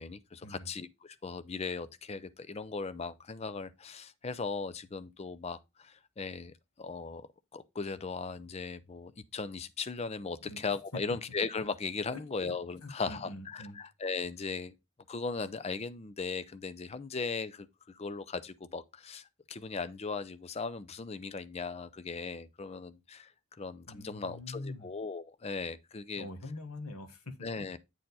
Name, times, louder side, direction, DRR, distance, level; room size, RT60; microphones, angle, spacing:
voice 1, 0.0-14.7 15.1-23.3 23.6-26.3 27.4-27.8, left 4 dB, 30° left, 0.4 m, -38 dB
voice 2, 12.8-13.8 23.9-24.9 26.2-27.5, left 2 dB, 85° left, 1.5 m, -44 dB
8.8 x 4.4 x 4.0 m
head